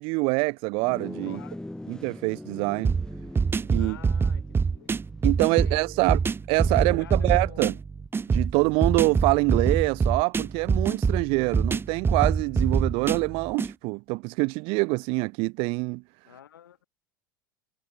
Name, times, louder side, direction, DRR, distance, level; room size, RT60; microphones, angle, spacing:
voice 1, 0.0-1.4 1.9-2.9 3.7-4.0 5.2-6.2 6.5-7.7 8.3-16.0, right 29 dB, 55° right, 1.2 m, -25 dB
sound 1, 0.8-10.4, left 1 dB, 5° left, 7.8 m, -44 dB
voice 2, 1.2-1.6 3.8-4.4 4.7-4.9 5.6-6.1 6.6-7.8 16.3-16.8, left 10 dB, 75° left, 7.0 m, -48 dB
sound 2, 2.8-13.7, right 5 dB, 20° right, 1.4 m, -25 dB
hypercardioid pair, 80°, 11 cm